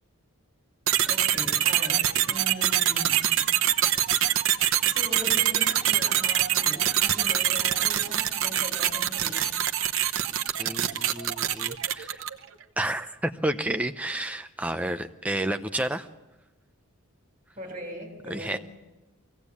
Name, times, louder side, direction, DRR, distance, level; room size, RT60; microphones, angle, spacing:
sound 1, 0.9-12.4, right 10 dB, 65° right, 0.9 m, -24 dB
voice 1, 1.1-3.3 4.8-9.5 17.6-18.6, equal, 25° right, 0 dB, 3.4 m, -39 dB
voice 2, 10.6-12.2 12.8-16.1 18.3-18.6, right 1 dB, 5° right, 7 dB, 0.7 m, -30 dB
23.0 x 16.5 x 8.4 m, 1.1 s
head